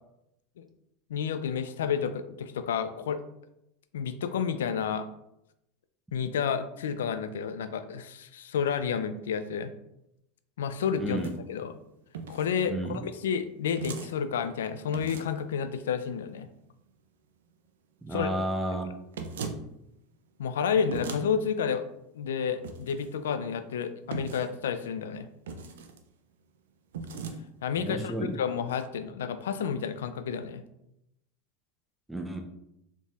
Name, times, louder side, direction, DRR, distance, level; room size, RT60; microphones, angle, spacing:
voice 1, 1.1-3.2 3.9-5.0 6.1-9.7 10.6-11.8 12.3-16.5 18.1-18.3 20.4-21.8 22.1-25.3 27.6-30.6, left 7 dB, 90° left, 10 dB, 0.3 m, -30 dB
voice 2, 11.0-11.3 12.7-13.0 18.0-18.9 27.8-28.3 32.1-32.4, right 1 dB, 5° right, 3 dB, 0.6 m, -31 dB
sound 1, 11.0-11.4 12.1-12.5 13.8-14.1 14.9-15.4 19.1-19.6 20.9-21.2 22.6-23.1 24.1-24.5 25.5-26.0 26.9-27.4, right 5 dB, 90° right, 0.4 m, -38 dB
4.0 x 3.6 x 2.4 m, 0.83 s
supercardioid pair, 110°, 0 cm